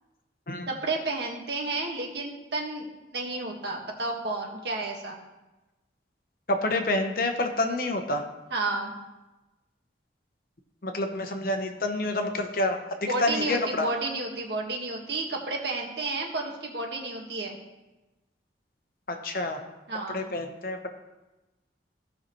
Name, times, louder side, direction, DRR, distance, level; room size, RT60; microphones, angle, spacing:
voice 1, 0.7-2.9 3.1-5.2 8.5-8.9 13.0-17.6 19.9-20.2, right 2 dB, 70° right, 0 dB, 1.6 m, -31 dB
voice 2, 6.5-8.2 10.8-12.8 13.2-13.9 19.1-19.6 20.1-20.9, left 2 dB, 50° left, 5 dB, 0.9 m, -28 dB
16.0 x 5.7 x 3.1 m, 1.1 s
head